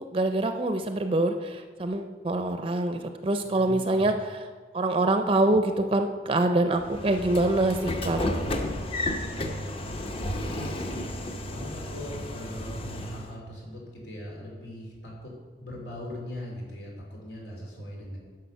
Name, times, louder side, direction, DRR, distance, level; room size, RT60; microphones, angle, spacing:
voice 1, 0.0-4.5 4.7-8.3, right 2 dB, 30° right, 7 dB, 0.5 m, -25 dB
voice 2, 3.4-4.0 9.9-15.3 15.6-18.2, left 1 dB, 90° left, -2 dB, 3.1 m, -40 dB
Train / Sliding door, 6.8-13.3, left 1 dB, 35° left, 0.8 m, -32 dB
10.5 x 6.4 x 5.6 m, 1.5 s
head